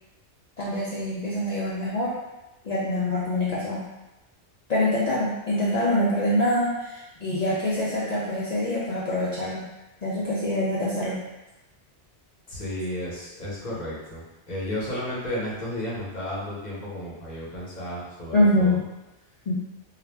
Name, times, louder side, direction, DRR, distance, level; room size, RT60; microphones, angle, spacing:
voice 1, 0.6-2.2 2.6-3.9 4.7-9.7 10.0-11.2 18.3-18.8 19.5-19.6, left 1 dB, 65° left, -7 dB, 0.4 m, -25 dB
voice 2, 12.5-18.8, left 1 dB, 45° left, -6 dB, 0.8 m, -33 dB
2.3 x 2.0 x 3.2 m, 1.0 s
omnidirectional pair, 1.2 m